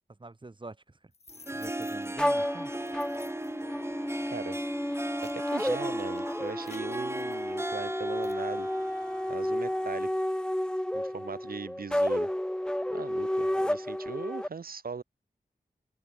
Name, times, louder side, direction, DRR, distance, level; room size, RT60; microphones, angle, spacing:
voice 1, 0.2-1.1 1.5-2.7, right 2 dB, 35° right, 4.9 m, -46 dB
sound 1, 1.1-2.3 2.8-3.6 4.2-4.5 4.9-7.8 8.2-8.4, left 3 dB, 45° left, 3.6 m, -55 dB
Harp, 1.3-10.0, right 1 dB, 15° right, 3.1 m, -38 dB
sound 2, 2.2-14.5, left 1 dB, 5° left, 0.8 m, -31 dB
voice 2, 4.3-4.6 5.2-8.7 9.3-10.3 10.9-12.3 12.9-15.0, right 5 dB, 80° right, 4.0 m, -39 dB
open air
wide cardioid pair, 105°, 15 cm